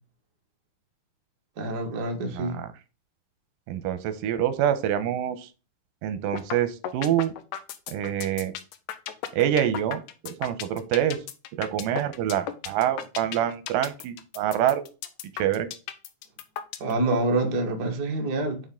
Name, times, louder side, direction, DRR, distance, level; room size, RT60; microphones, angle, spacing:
voice 1, 1.6-2.6 16.8-18.6, right 2 dB, 60° right, 1.0 m, -26 dB
voice 2, 3.7-5.5 6.0-7.3 7.9-8.5 9.3-11.2 11.5-14.8 15.3-15.7, right 11 dB, 90° right, 2.4 m, -26 dB
sound 1, 6.3-6.6 6.8-16.9, left 10 dB, 80° left, 1.7 m, -34 dB
8.9 x 3.5 x 3.6 m
omnidirectional pair, 3.8 m